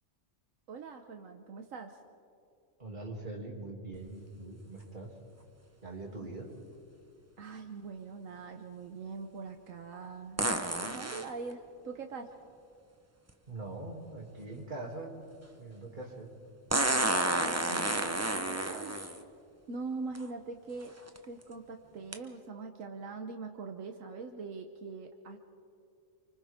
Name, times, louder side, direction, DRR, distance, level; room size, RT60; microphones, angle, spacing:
voice 1, 0.7-2.0 6.2-6.3 7.4-10.4 10.8-12.3 17.7-18.9 19.7-20.9 21.2-25.4, right 4 dB, 80° right, 5 dB, 1.4 m, -42 dB
voice 2, 2.8-5.1 5.8-6.5 13.5-15.2 15.6-16.3, right 2 dB, 35° right, -1 dB, 3.0 m, -42 dB
sound 1, 3.9-4.0 10.4-11.3 13.3-13.4 16.7-19.2 20.1-20.2 20.9-21.2 22.1-22.2, right 1 dB, 15° right, 0.9 m, -30 dB
28.5 x 25.5 x 3.7 m, 2.5 s
omnidirectional pair, 1.4 m